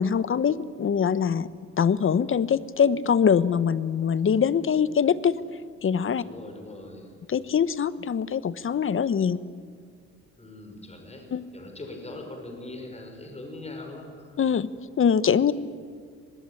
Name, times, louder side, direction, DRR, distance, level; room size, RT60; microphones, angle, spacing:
voice 1, 0.0-1.5 1.8-5.4 5.8-6.2 7.3-9.4 11.3-11.5 14.4-14.7 15.0-15.5, left 7 dB, 45° left, 16 dB, 1.1 m, -23 dB
voice 2, 6.2-7.1 10.4-11.3 11.5-14.4, left 2 dB, 20° left, 4 dB, 5.4 m, -41 dB
24.0 x 19.5 x 9.9 m, 2.1 s
cardioid pair, 90°, 30 cm